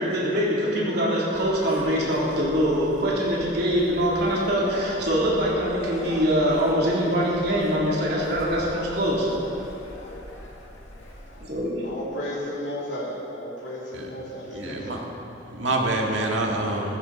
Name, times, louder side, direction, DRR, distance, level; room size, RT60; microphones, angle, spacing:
voice 1, 0.0-9.3 11.4-11.9, equal, 55° right, -5 dB, 3.4 m, -23 dB
sound 1, 1.3-11.7, left 1 dB, 90° left, 2.0 m, -41 dB
voice 2, 11.8-15.0, equal, 70° left, -6 dB, 3.0 m, -33 dB
voice 3, 14.5-15.0 15.5-17.0, right 2 dB, 80° right, 0 dB, 1.9 m, -26 dB
15.5 x 14.5 x 4.3 m, 3.0 s
head